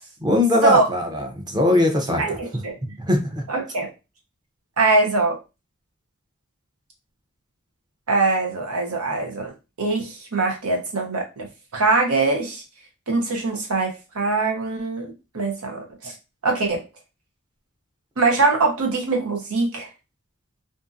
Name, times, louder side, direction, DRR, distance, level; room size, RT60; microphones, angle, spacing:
voice 1, 0.2-2.2 3.1-3.4, left 1 dB, 20° right, 4 dB, 0.6 m, -20 dB
voice 2, 2.2-2.7 3.5-3.9 4.8-5.4 8.1-9.5 9.8-11.5 11.7-12.6 13.1-16.1 16.4-16.8 18.2-19.9, right 3 dB, 90° right, 1 dB, 0.9 m, -22 dB
2.6 x 2.6 x 2.4 m, 0.27 s
head